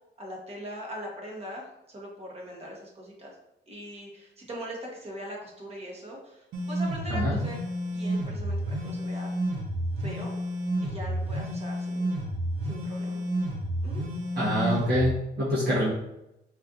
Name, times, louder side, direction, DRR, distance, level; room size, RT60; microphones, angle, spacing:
voice 1, 0.2-3.4 3.7-7.6 7.9-9.4 10.0-10.3 10.8-12.1 12.6-13.2 13.8-14.0, equal, 30° right, -2 dB, 1.1 m, -41 dB
sound 1, 6.5-15.1, right 1 dB, 85° right, 0.8 m, -30 dB
voice 2, 14.3-15.9, equal, 55° right, -9 dB, 1.2 m, -25 dB
4.3 x 2.6 x 2.4 m, 0.87 s
cardioid pair, 90°, 20 cm